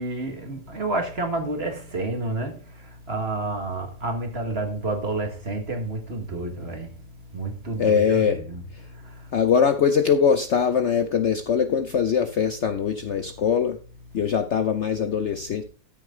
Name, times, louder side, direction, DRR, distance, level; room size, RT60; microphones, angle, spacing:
voice 1, 0.0-2.6 3.1-6.9 7.3-8.6 9.0-9.1, right 2 dB, 40° right, 1.9 m, -29 dB
voice 2, 7.8-8.4 9.3-13.8 14.1-15.6, left 7 dB, 55° left, 0.8 m, -22 dB
13.0 x 6.4 x 3.8 m
omnidirectional pair, 1.8 m